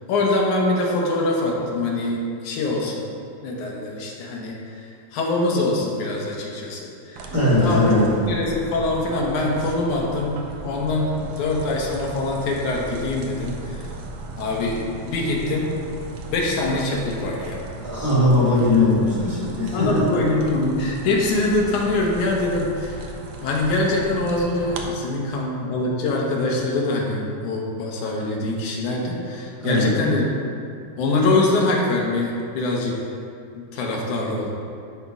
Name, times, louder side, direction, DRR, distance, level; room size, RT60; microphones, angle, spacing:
voice 1, 0.1-2.2 2.4-3.0 3.4-4.9 5.1-7.3 7.6-7.9 8.3-13.8 14.4-15.7 16.3-17.6 19.2-19.4 19.7-23.1 23.4-30.3 31.0-32.9 33.5-34.5, left 2 dB, 80° left, -1 dB, 2.6 m, -24 dB
sound 1, 7.2-24.9, right 3 dB, 70° right, 1.3 m, -36 dB
voice 2, 7.3-8.1 17.7-20.1 29.6-30.0, left 2 dB, 30° right, -9 dB, 2.5 m, -19 dB
12.0 x 4.4 x 4.8 m, 2.5 s
omnidirectional pair, 3.4 m